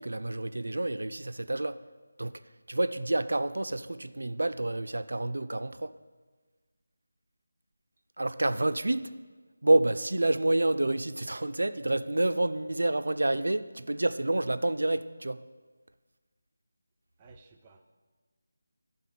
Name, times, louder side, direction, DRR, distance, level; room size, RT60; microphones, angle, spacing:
voice 1, 0.0-1.8 2.2-2.4 2.7-5.9 8.2-9.1 9.6-15.4, right 2 dB, 80° right, 12 dB, 0.4 m, -28 dB
voice 2, 17.2-18.0, right 4 dB, 20° right, 4 dB, 0.5 m, -57 dB
11.0 x 3.8 x 5.8 m, 1.4 s
figure-of-eight pair, 165°, 0 cm